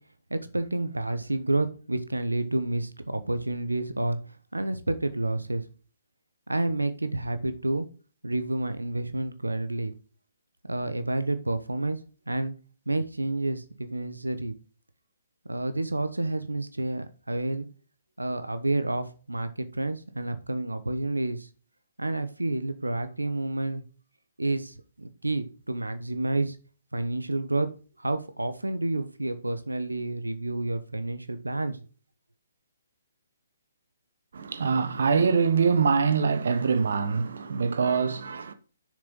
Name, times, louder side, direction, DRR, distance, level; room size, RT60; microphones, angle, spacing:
voice 1, 0.3-4.2 4.5-5.6 6.5-7.9 8.2-9.9 10.7-12.0 12.3-12.5 12.9-14.5 15.5-17.7 18.2-21.5 22.0-23.8 24.4-26.6 26.9-27.7 28.0-31.8, right 2 dB, 85° right, 1.0 m, -29 dB
voice 2, 34.3-38.5, right 5 dB, 60° right, 1.0 m, -24 dB
6.9 x 6.6 x 5.3 m
figure-of-eight pair, 135°, 0 cm